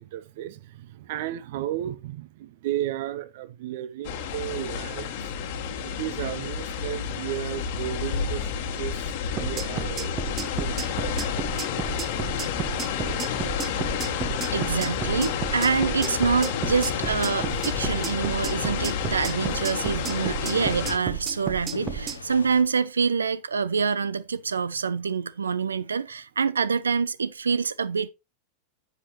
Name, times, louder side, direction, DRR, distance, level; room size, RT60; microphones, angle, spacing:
voice 1, 0.0-5.1 5.8-10.7, right 13 dB, 50° right, 0.8 m, -34 dB
sound 1, 4.0-21.0, left 7 dB, 50° left, 1.3 m, -30 dB
sound 2, 9.4-22.2, right 8 dB, 25° right, 0.9 m, -32 dB
voice 2, 14.5-28.1, right 5 dB, 75° right, 0.4 m, -26 dB
sound 3, 16.0-22.6, left 4 dB, 75° left, 0.9 m, -40 dB
10.0 x 7.3 x 3.0 m
figure-of-eight pair, 90°, 0 cm